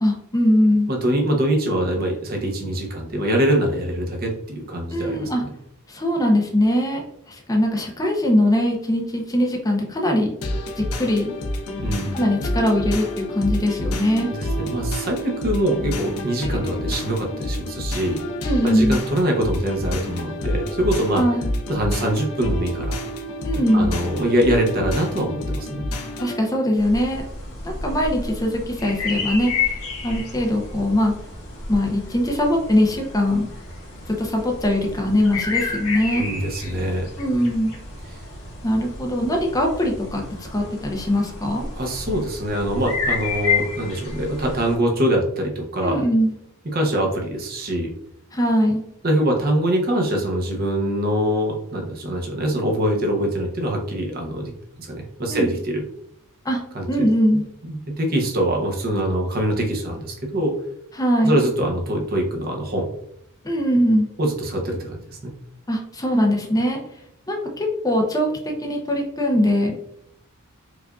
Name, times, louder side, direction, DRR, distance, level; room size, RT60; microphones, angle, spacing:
voice 1, 0.0-0.9 4.9-5.4 5.9-7.0 7.5-10.3 10.8-11.3 12.1-14.3 18.4-19.0 21.1-21.5 23.4-23.9 26.2-27.2 27.6-29.5 30.0-31.1 31.7-33.5 34.2-36.3 37.2-37.7 38.6-40.2 40.5-41.7 45.8-46.3 48.3-48.8 55.3-55.5 56.5-56.6 56.9-57.5 61.0-61.4 63.4-64.1 65.7-66.8 67.3-68.3 68.6-69.8, equal, 15° left, 1 dB, 0.6 m, -21 dB
voice 2, 0.9-5.5 11.8-12.2 14.3-18.2 18.6-21.2 21.7-22.9 23.7-25.8 36.1-37.1 38.1-38.2 41.8-46.0 46.6-47.9 49.0-55.8 56.7-57.1 57.6-60.5 61.2-62.9 64.2-65.3, right 1 dB, 45° right, 1 dB, 0.7 m, -23 dB
sound 1, 10.4-26.4, left 1 dB, 85° left, 0.5 m, -28 dB
sound 2, 26.7-44.8, left 4 dB, 65° left, 1.3 m, -31 dB
4.7 x 2.5 x 2.3 m, 0.72 s
head